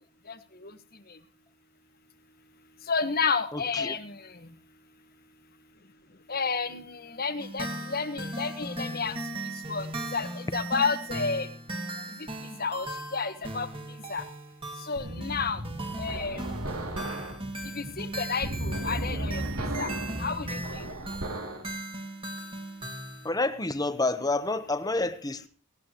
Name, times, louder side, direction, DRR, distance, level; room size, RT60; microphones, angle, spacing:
voice 1, 2.9-4.3 6.3-9.1 9.7-11.5 12.6-13.7 14.1-14.2 14.8-15.6 16.0-16.4 17.7-19.4 19.8-19.9 20.2-20.8, left 5 dB, 40° left, 1.4 m, -31 dB
voice 2, 3.5-3.9 23.2-25.5, left 2 dB, 15° left, 1.0 m, -29 dB
sound 1, 7.4-23.3, right 1 dB, 25° right, 2.2 m, -38 dB
sound 2, 15.0-21.7, right 1 dB, 75° right, 2.6 m, -35 dB
18.5 x 18.5 x 3.0 m
head